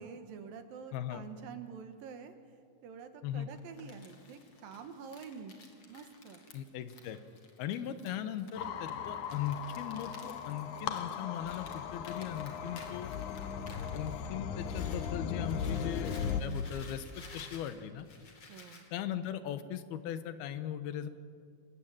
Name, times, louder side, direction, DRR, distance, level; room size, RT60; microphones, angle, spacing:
voice 1, 0.0-2.3 2.8-5.5 5.9-6.5 18.5-18.9, right 6 dB, 70° right, 8 dB, 3.1 m, -47 dB
voice 2, 0.9-1.2 3.2-3.5 6.5-7.2 7.6-13.1 13.9-17.1 17.3-18.1 18.9-21.1, left 10 dB, 85° left, 11 dB, 3.0 m, -39 dB
Crumpling crinkling, 3.5-15.1 15.4-18.9, left 3 dB, 40° left, 3.7 m, -54 dB
sound 1, 8.6-16.4, left 7 dB, 65° left, 2.2 m, -38 dB
27.0 x 20.0 x 9.0 m, 2.1 s
omnidirectional pair, 4.4 m